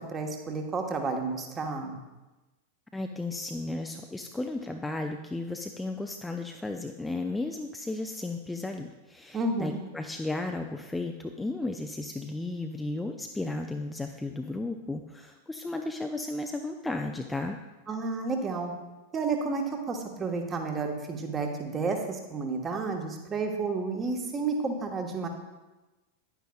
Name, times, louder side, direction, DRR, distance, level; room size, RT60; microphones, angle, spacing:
voice 1, 0.1-2.0 9.3-9.8 17.9-18.7 19.1-25.3, right 4 dB, 20° right, 3 dB, 1.2 m, -31 dB
voice 2, 2.9-17.6, left 2 dB, 5° left, 4 dB, 0.5 m, -34 dB
10.0 x 9.3 x 2.3 m, 1.1 s
figure-of-eight pair, 90°, 0 cm